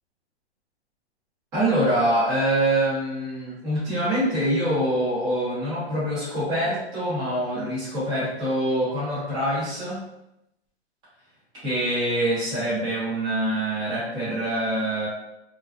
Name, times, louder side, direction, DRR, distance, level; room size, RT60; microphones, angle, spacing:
voice 1, 1.5-10.0 11.6-15.1, right 1 dB, 10° right, -10 dB, 0.8 m, -25 dB
2.5 x 2.3 x 2.3 m, 0.86 s
hypercardioid pair, 160°, 33 cm